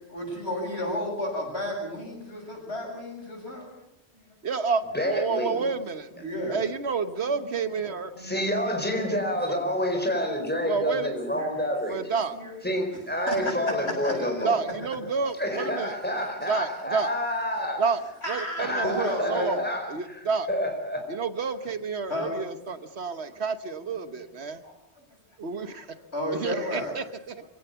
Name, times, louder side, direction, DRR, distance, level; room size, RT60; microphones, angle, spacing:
voice 1, 0.1-3.7 4.1-4.2 6.1-6.6 7.2-7.3 7.9-8.7 9.0-10.1 11.3-11.7 11.9-12.0 12.3-14.3 16.4-16.5 18.2-19.6 22.1-22.3 24.4-24.8 25.7-25.8 26.1-26.9, left 1 dB, 75° left, 0 dB, 8.1 m, -33 dB
voice 2, 4.4-6.1 6.5-8.1 9.5-9.6 10.6-11.2 11.9-12.4 14.4-16.0 16.4-17.1 17.8-18.0 18.3-20.5 21.1-24.6 25.4-25.9 26.3-27.4, right 5 dB, 75° right, 11 dB, 1.4 m, -29 dB
voice 3, 4.9-5.6 8.2-12.0 12.6-14.5 15.4-17.8 18.6-20.2 20.5-21.0, equal, 10° left, 3 dB, 4.5 m, -28 dB
26.0 x 17.0 x 7.0 m, 0.88 s
omnidirectional pair, 1.1 m